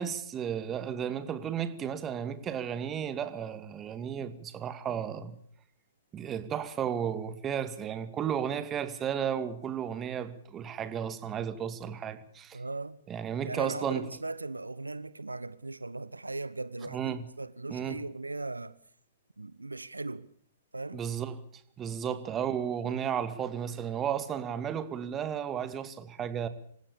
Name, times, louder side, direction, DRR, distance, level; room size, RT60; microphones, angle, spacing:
voice 1, 0.0-5.3 6.1-12.6 13.1-14.1 16.9-17.2 17.7-18.0 20.9-21.4 21.8-26.5, right 8 dB, 20° right, 2.3 m, -33 dB
voice 2, 12.5-13.0 13.4-18.7 19.4-20.3 20.7-21.0 22.0-22.2, right 2 dB, 85° right, 1.0 m, -38 dB
27.0 x 16.0 x 6.9 m
figure-of-eight pair, 115°, 0 cm